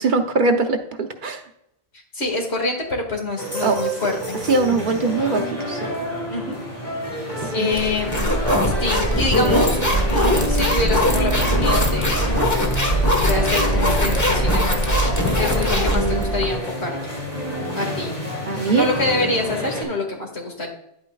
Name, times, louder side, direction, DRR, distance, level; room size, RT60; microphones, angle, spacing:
voice 1, 0.0-1.4 3.6-3.8 4.5-5.9 7.4-7.7 18.5-18.9, right 3 dB, 55° right, 6 dB, 0.8 m, -21 dB
voice 2, 1.9-4.4 6.3-6.6 7.1-8.4 8.8-9.8 10.1-12.4 13.2-17.0 17.8-18.1 18.7-20.7, left 2 dB, 75° left, 1 dB, 2.1 m, -26 dB
sound 1, 3.4-19.8, left 1 dB, 45° left, 3.2 m, -28 dB
sound 2, 7.7-16.5, equal, 15° left, 1.1 m, -20 dB
10.0 x 8.5 x 2.3 m, 0.76 s
omnidirectional pair, 1.1 m